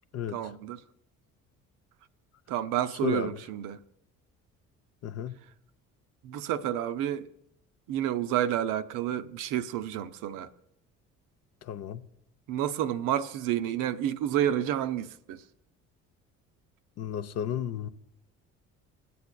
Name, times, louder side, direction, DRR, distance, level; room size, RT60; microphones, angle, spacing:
voice 1, 0.3-0.8 2.5-3.8 6.2-7.3 7.9-10.5 12.5-15.4, right 11 dB, 50° right, 0.6 m, -30 dB
voice 2, 3.0-3.4 5.0-5.4 11.6-12.0 17.0-17.9, left 9 dB, 40° left, 0.5 m, -33 dB
17.5 x 8.3 x 2.2 m
figure-of-eight pair, 50°, 41 cm